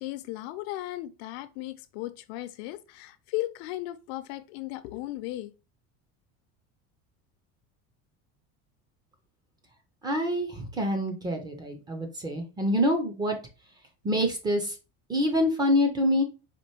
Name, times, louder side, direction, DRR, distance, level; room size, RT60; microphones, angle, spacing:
voice 1, 0.0-5.5, left 16 dB, 75° left, 0.5 m, -36 dB
voice 2, 10.0-13.4 14.0-14.8 15.1-16.2, equal, 15° right, 0.4 m, -26 dB
4.3 x 3.0 x 2.9 m
cardioid pair, 175°, 31 cm